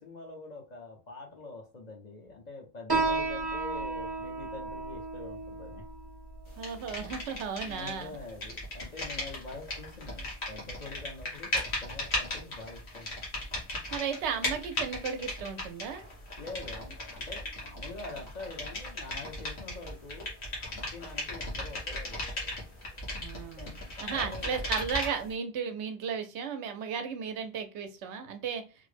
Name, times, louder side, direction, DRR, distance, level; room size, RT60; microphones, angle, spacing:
voice 1, 0.0-5.9 7.6-13.1 16.4-20.3 20.6-22.4 23.6-24.7, left 3 dB, 45° left, 1 dB, 0.7 m, -45 dB
Piano, 2.9-10.0, right 3 dB, 30° right, 0.5 m, -35 dB
sound 1, 6.6-8.0 8.3-25.3, left 1 dB, 75° left, 1.5 m, -37 dB
voice 2, 6.6-8.1 13.9-16.1 23.2-28.6, right 6 dB, 80° right, 7 dB, 0.9 m, -35 dB
3.8 x 2.1 x 3.2 m, 0.32 s
omnidirectional pair, 1.1 m